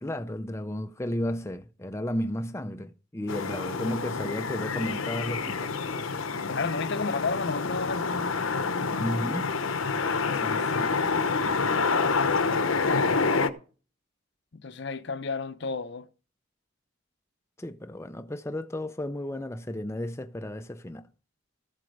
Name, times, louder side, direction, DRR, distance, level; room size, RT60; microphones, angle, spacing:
voice 1, 0.0-5.7 9.0-9.5 10.3-10.9 17.6-21.0, left 1 dB, 15° left, 0.5 m, -33 dB
sound 1, 3.3-13.5, left 4 dB, 80° left, 1.0 m, -27 dB
voice 2, 6.5-8.1 14.5-16.1, left 4 dB, 55° left, 0.7 m, -31 dB
14.5 x 7.6 x 5.3 m
head